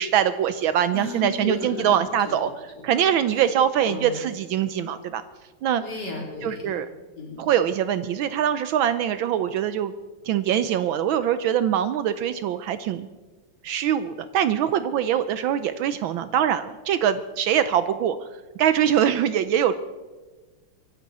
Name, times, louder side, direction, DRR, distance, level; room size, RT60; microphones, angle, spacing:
voice 1, 0.0-2.5 2.8-5.2 5.6-5.8 6.4-6.9 7.4-9.9 10.3-13.1 13.6-18.2 18.6-19.7, right 9 dB, 75° right, 12 dB, 1.3 m, -23 dB
voice 2, 0.9-2.4 2.9-3.0 3.3-3.5 3.8-4.3 5.8-6.7 7.1-7.4, left 2 dB, 50° left, -1 dB, 4.0 m, -34 dB
24.5 x 11.5 x 4.1 m, 1.3 s
omnidirectional pair, 2.4 m